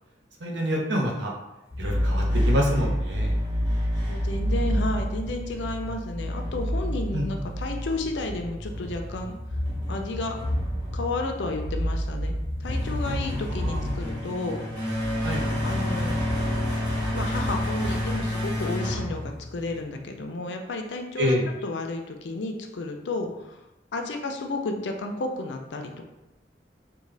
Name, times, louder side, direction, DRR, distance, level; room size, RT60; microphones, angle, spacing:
voice 1, 0.4-1.3 1.8-3.3 7.1-7.3 13.5-13.8 15.2-15.4 21.2-21.4, equal, 80° right, -1 dB, 0.8 m, -26 dB
sound 1, 1.7-19.9, equal, 25° right, 1.0 m, -28 dB
voice 2, 4.0-9.4 9.9-10.4 10.9-12.4 12.6-14.6 15.6-16.3 17.1-19.2 19.5-23.6 23.9-26.1, left 2 dB, 75° left, 4 dB, 0.5 m, -32 dB
3.6 x 2.2 x 3.2 m, 0.97 s
head